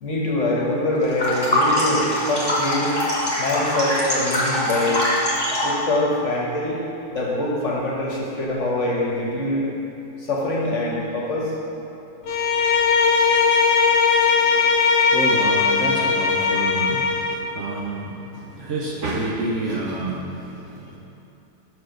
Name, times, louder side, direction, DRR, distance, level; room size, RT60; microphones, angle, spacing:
voice 1, 0.0-2.9 3.4-5.0 5.6-6.8 7.1-9.7 10.2-11.5, left 1 dB, 50° left, -3 dB, 1.2 m, -24 dB
sound 1, 1.0-5.8, left 1 dB, 15° left, 1.8 m, -23 dB
Bowed string instrument, 12.2-17.4, left 5 dB, 85° left, 0.5 m, -19 dB
voice 2, 14.1-21.0, right 2 dB, 55° right, -4 dB, 1.0 m, -29 dB
6.3 x 4.8 x 6.3 m, 2.9 s
omnidirectional pair, 1.8 m